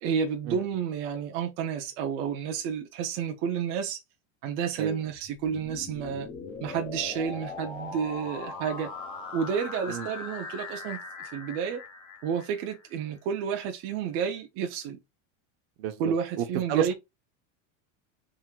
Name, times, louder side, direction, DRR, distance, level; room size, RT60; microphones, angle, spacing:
voice 1, 0.0-4.0 4.4-6.3 6.6-8.9 9.3-11.8 12.2-15.0 16.0-16.9, right 7 dB, 35° right, 0.6 m, -30 dB
sound 1, 5.1-13.1, left 4 dB, 15° left, 0.4 m, -40 dB
voice 2, 15.8-16.9, right 10 dB, 60° right, 0.9 m, -31 dB
3.7 x 2.6 x 4.4 m
supercardioid pair, 175°, 37 cm